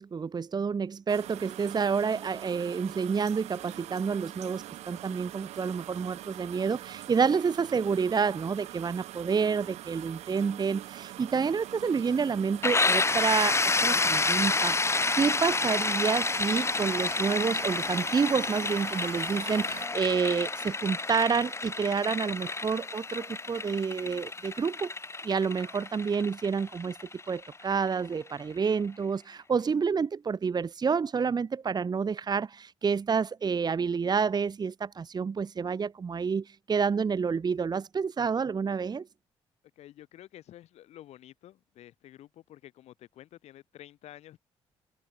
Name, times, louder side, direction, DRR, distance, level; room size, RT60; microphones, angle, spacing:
voice 1, 0.0-24.9 25.2-27.0 27.3-39.1, right 5 dB, 40° right, 1.0 m, -29 dB
sound 1, 1.1-19.9, right 14 dB, 85° right, 2.0 m, -44 dB
voice 2, 9.3-9.6 39.8-44.4, left 13 dB, 80° left, 2.4 m, -51 dB
sound 2, 12.6-28.2, left 3 dB, 25° left, 1.5 m, -29 dB
cardioid pair, 70°, 11 cm